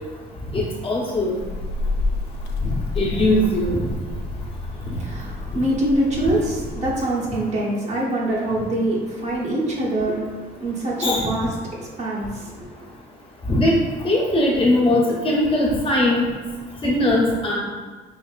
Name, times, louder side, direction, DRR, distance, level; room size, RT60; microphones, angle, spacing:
voice 1, 0.5-1.4 2.6-2.7 3.0-3.8 4.9-5.0 11.0-11.3 13.5-13.8 14.0-16.3 16.8-17.6, left 1 dB, 30° left, -5 dB, 1.2 m, -20 dB
sound 1, 1.4-7.0, left 2 dB, 75° left, 0.5 m, -29 dB
voice 2, 5.0-10.3 10.5-12.7, right 1 dB, 40° right, -5 dB, 1.0 m, -24 dB
5.0 x 2.9 x 2.4 m, 1.5 s
cardioid pair, 110°, 17 cm